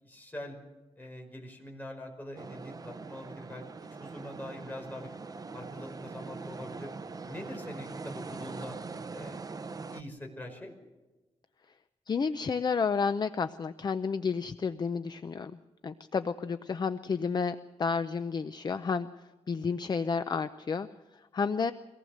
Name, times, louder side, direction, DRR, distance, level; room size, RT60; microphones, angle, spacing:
voice 1, 0.0-0.6 1.0-5.1 5.5-6.9 7.2-8.8 9.1-9.4 9.9-10.7, left 1 dB, 15° left, 1 dB, 5.4 m, -43 dB
sound 1, 2.4-10.0, right 4 dB, 35° right, 0.8 m, -42 dB
voice 2, 12.1-15.5 15.8-19.1 19.5-20.9 21.3-21.7, left 5 dB, 40° left, 11 dB, 0.6 m, -31 dB
24.0 x 18.5 x 6.6 m, 1.1 s
wide cardioid pair, 135°, 11 cm